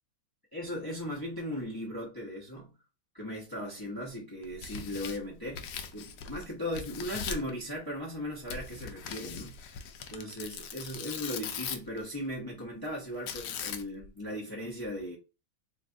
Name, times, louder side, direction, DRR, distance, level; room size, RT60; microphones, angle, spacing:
voice 1, 0.5-2.7 3.1-9.8 10.1-15.2, left 1 dB, 35° left, 0.3 m, -38 dB
Tearing, 4.4-6.4 6.7-7.5 8.5-12.0 13.3-14.1, left 6 dB, 75° left, 1.0 m, -40 dB
3.2 x 2.4 x 3.7 m
omnidirectional pair, 2.2 m